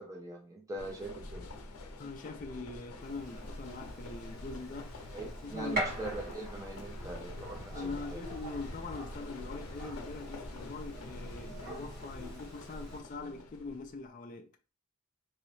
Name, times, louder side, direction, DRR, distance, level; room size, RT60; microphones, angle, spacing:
voice 1, 0.0-1.4 5.1-8.2, right 2 dB, 15° right, 0.7 m, -42 dB
sound 1, 0.8-13.9, left 2 dB, 85° left, 0.6 m, -45 dB
voice 2, 2.0-5.0 5.4-6.0 7.7-14.5, left 3 dB, 35° left, 0.3 m, -43 dB
Gunshot gunfire, 3.0-13.0, right 1 dB, 40° right, 1.5 m, -44 dB
3.0 x 2.8 x 3.1 m
head